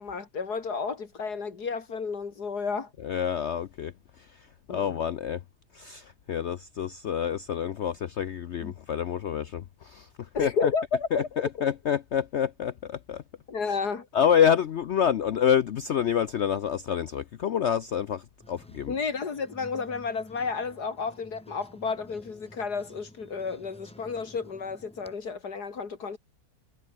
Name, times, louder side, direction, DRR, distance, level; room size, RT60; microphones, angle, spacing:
voice 1, 0.0-2.9 4.7-5.0 8.6-8.7 10.3-11.3 13.5-14.1 18.9-26.2, left 5 dB, 75° left, 2.8 m, -31 dB
voice 2, 3.0-3.9 4.7-5.4 5.7-10.1 10.4-10.7 11.1-11.2 11.6-13.2 14.1-18.9, left 8 dB, 60° left, 0.8 m, -27 dB
sound 1, 18.4-25.2, equal, 5° left, 4.4 m, -52 dB
omnidirectional pair, 1.7 m